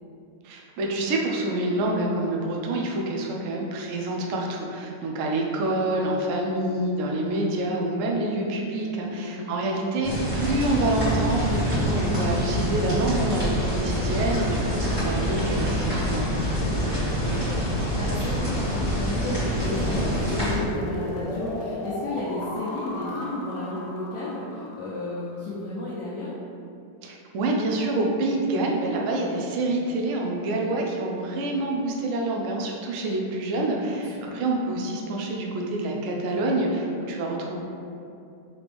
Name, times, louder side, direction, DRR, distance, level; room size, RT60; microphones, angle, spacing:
voice 1, 0.4-16.4 27.0-37.6, right 2 dB, 70° right, -1 dB, 0.7 m, -27 dB
voice 2, 9.0-9.5 16.5-16.9 17.2-26.3 33.9-34.0 34.3-34.4, left 2 dB, 65° left, -7 dB, 1.1 m, -33 dB
sound 1, 10.0-20.6, equal, 15° right, 1.4 m, -26 dB
sound 2, 19.5-25.4, left 2 dB, 90° left, 1.3 m, -35 dB
4.2 x 3.0 x 3.4 m, 2.6 s
omnidirectional pair, 1.9 m